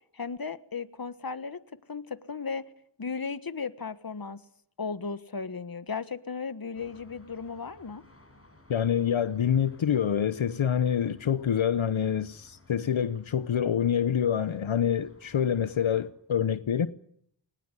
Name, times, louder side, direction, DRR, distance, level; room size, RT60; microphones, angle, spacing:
voice 1, 0.1-1.6 1.9-2.7 3.0-4.4 4.8-8.0, left 5 dB, 50° left, 1.4 m, -35 dB
sound 1, 6.7-16.1, left 2 dB, 30° left, 7.4 m, -58 dB
voice 2, 8.7-16.9, left 8 dB, 75° left, 0.9 m, -26 dB
21.5 x 19.5 x 9.8 m
wide cardioid pair, 50°, 47 cm